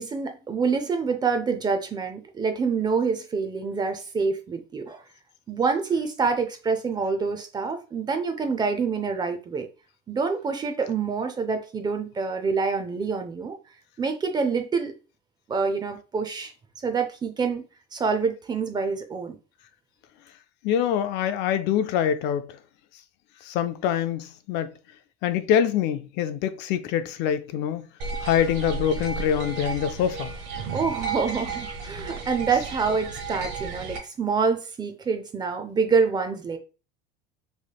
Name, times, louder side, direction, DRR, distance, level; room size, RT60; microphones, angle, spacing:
voice 1, 0.0-5.0 5.5-9.7 10.1-13.6 14.0-14.9 15.5-16.5 16.8-17.6 17.9-19.4 30.7-36.6, right 5 dB, 20° right, 0.4 m, -26 dB
voice 2, 20.6-22.6 23.4-24.7 25.2-27.8 28.2-30.3, left 9 dB, 55° left, 0.4 m, -25 dB
sound 1, 28.0-34.0, right 4 dB, 60° right, 0.9 m, -33 dB
3.1 x 3.1 x 2.3 m
supercardioid pair, 120°, 21 cm